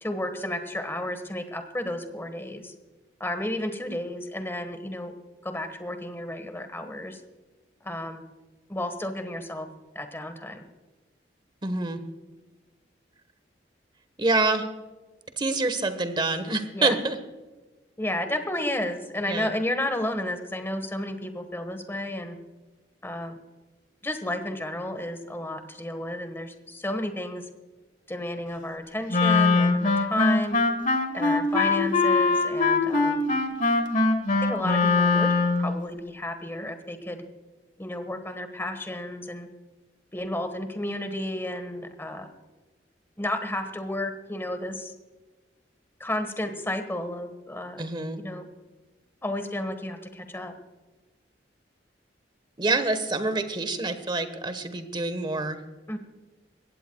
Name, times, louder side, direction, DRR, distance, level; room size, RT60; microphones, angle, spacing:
voice 1, 0.0-2.7 3.2-5.1 5.4-7.2 7.8-8.2 8.7-9.7 9.9-10.6 16.7-17.0 18.0-22.4 23.0-23.4 24.0-27.4 28.1-30.6 31.1-33.3 34.4-37.2 37.8-39.5 40.1-42.3 43.2-44.9 46.0-47.8 48.2-48.5 49.2-50.5 55.9-56.0, left 1 dB, 15° left, 8 dB, 1.4 m, -32 dB
voice 2, 11.6-12.0 14.2-14.7 15.4-17.2 19.3-19.5 47.8-48.2 52.6-55.6, right 3 dB, 25° right, 10 dB, 1.2 m, -26 dB
Wind instrument woodwind instrument, 29.1-35.7, left 3 dB, 45° left, 1.3 m, -22 dB
21.5 x 16.5 x 2.3 m, 1.2 s
head